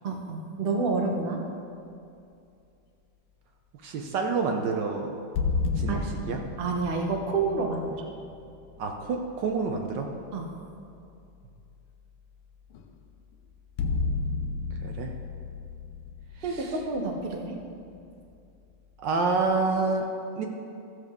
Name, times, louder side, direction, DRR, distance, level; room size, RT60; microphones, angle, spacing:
voice 1, 0.0-1.4 5.9-6.0 6.6-8.0 10.3-10.5 16.4-17.6, right 3 dB, 50° right, 1 dB, 0.7 m, -29 dB
voice 2, 3.8-5.1 5.8-6.4 8.8-10.1 14.8-15.1 16.4-16.8 19.0-20.1 20.4-20.5, right 4 dB, 70° right, 3 dB, 1.2 m, -28 dB
sound 1, 5.4-9.1 12.7-12.9 13.8-17.6, left 4 dB, 80° left, 1.5 m, -32 dB
14.0 x 7.2 x 3.6 m, 2.5 s
omnidirectional pair, 2.4 m